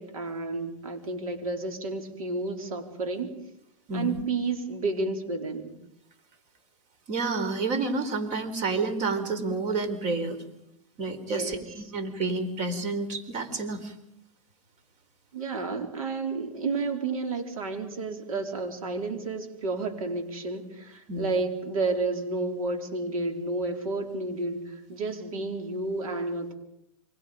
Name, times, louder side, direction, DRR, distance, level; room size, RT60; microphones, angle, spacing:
voice 1, 0.0-3.4 3.9-5.8 11.3-11.9 15.3-26.5, right 3 dB, 85° right, 5 dB, 4.1 m, -31 dB
voice 2, 3.9-4.2 7.1-10.4 11.0-13.9 21.1-21.3, right 3 dB, 40° right, 10 dB, 4.2 m, -29 dB
28.5 x 24.0 x 5.2 m, 0.80 s
hypercardioid pair, 115°, 17 cm